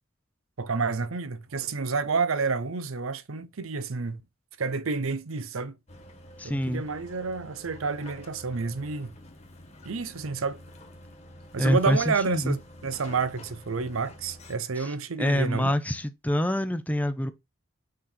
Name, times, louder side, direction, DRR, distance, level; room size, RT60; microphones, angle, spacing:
voice 1, 0.6-4.2 4.6-5.8 6.4-9.1 9.8-10.6 11.5-15.7, right 4 dB, 80° right, 0.7 m, -29 dB
sound 1, 5.9-14.6, left 1 dB, 30° left, 1.5 m, -48 dB
voice 2, 6.4-6.8 11.6-12.6 14.8-14.9 15.2-17.3, equal, 5° left, 0.6 m, -26 dB
6.4 x 4.1 x 4.3 m
head